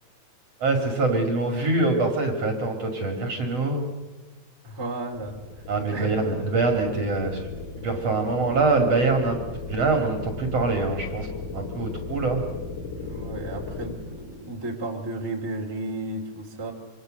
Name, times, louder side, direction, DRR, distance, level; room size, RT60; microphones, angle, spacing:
voice 1, 0.6-3.9 5.7-7.5 7.8-9.4 9.7-11.3 11.5-12.4, right 3 dB, 45° right, 4 dB, 2.9 m, -24 dB
voice 2, 4.6-5.4 5.9-6.2 12.9-16.7, right 2 dB, 5° right, 0 dB, 2.3 m, -33 dB
sound 1, 5.1-14.0, left 4 dB, 70° left, 5.7 m, -36 dB
27.0 x 25.0 x 6.5 m, 1.3 s
omnidirectional pair, 4.7 m